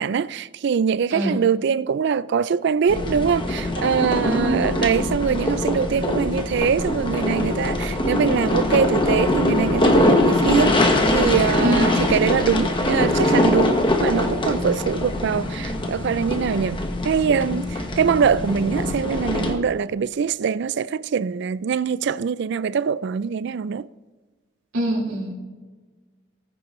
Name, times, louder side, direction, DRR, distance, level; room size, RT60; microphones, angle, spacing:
voice 1, 0.0-23.9, right 6 dB, 55° right, 0.3 m, -23 dB
sound 1, 2.9-19.5, left 1 dB, 25° left, 1.2 m, -22 dB
voice 2, 4.2-4.6 11.6-11.9 24.7-25.3, right 1 dB, 90° right, 4.2 m, -23 dB
19.5 x 9.6 x 3.1 m
head